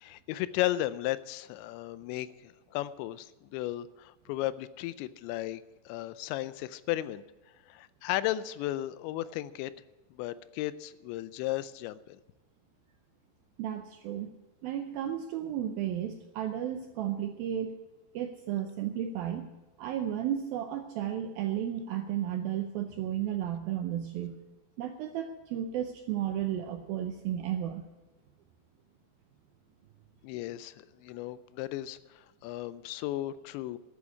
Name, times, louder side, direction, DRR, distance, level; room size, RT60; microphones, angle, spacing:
voice 1, 0.0-7.2 7.7-9.7 10.1-12.2 30.2-33.8, left 15 dB, 90° left, 15 dB, 2.9 m, -35 dB
voice 2, 13.6-14.3 14.6-17.8 18.1-19.5 19.8-24.4 24.8-27.8, right 10 dB, 80° right, 6 dB, 2.1 m, -33 dB
12.5 x 8.7 x 9.6 m, 1.1 s
omnidirectional pair, 5.1 m